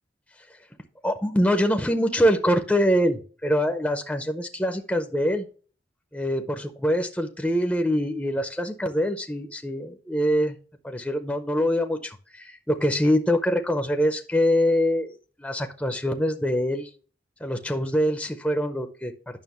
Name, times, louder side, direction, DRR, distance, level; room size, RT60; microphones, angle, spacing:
voice 1, 1.0-5.5 6.1-10.6 10.8-16.9 17.4-19.1, equal, 5° left, 5 dB, 0.6 m, -24 dB
9.2 x 6.1 x 3.0 m, 0.39 s
head